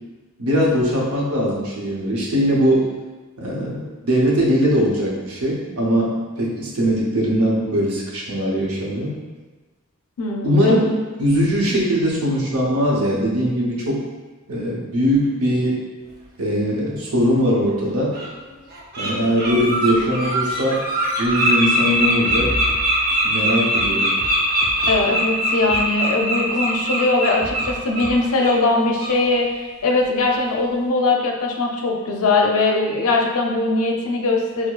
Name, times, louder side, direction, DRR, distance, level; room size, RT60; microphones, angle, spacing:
voice 1, 0.4-2.9 3.4-6.1 6.4-9.1 10.4-10.9 11.2-14.0 14.5-15.8 16.4-18.1 19.0-20.8 21.2-22.5 23.2-24.1, equal, 75° right, -4 dB, 0.7 m, -20 dB
voice 2, 10.2-10.9 24.9-34.7, left 3 dB, 75° left, 1 dB, 0.5 m, -20 dB
Bird, 17.3-17.4 18.1-18.3 18.7-19.1 19.4-28.1 28.4-28.6 29.0-29.2, right 1 dB, 45° right, 0.7 m, -22 dB
sound 1, 21.2-21.5 22.0-23.3 23.7-25.1 25.7-25.9 26.5-26.6 27.4-28.3, equal, 5° right, 0.4 m, -33 dB
4.5 x 2.0 x 2.3 m, 1.3 s
head